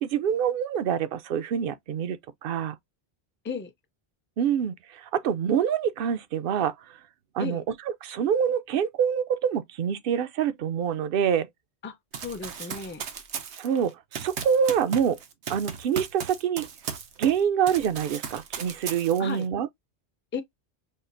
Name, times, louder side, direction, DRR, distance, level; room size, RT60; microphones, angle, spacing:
voice 1, 0.0-2.7 4.4-6.7 7.3-7.6 8.0-11.5 13.6-15.2 15.5-16.7 17.2-19.7, right 8 dB, 60° right, 0.7 m, -26 dB
voice 2, 11.8-13.0 19.2-19.5 20.3-20.4, left 5 dB, 15° left, 0.4 m, -35 dB
Run, 12.1-17.4 17.7-19.4, right 7 dB, 85° right, 1.1 m, -36 dB
5.6 x 2.4 x 2.5 m
omnidirectional pair, 1.1 m